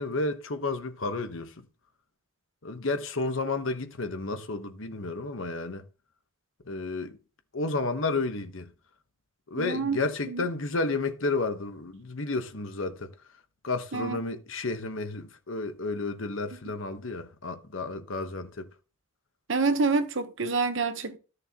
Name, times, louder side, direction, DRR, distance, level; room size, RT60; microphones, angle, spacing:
voice 1, 0.0-1.5 2.6-5.8 6.6-7.2 7.5-8.7 9.5-13.1 13.6-18.6, left 3 dB, 70° left, 1.1 m, -31 dB
voice 2, 9.6-10.0 10.3-10.4 13.9-14.2 19.5-21.2, right 4 dB, 60° right, 0.9 m, -27 dB
13.5 x 6.6 x 2.9 m
head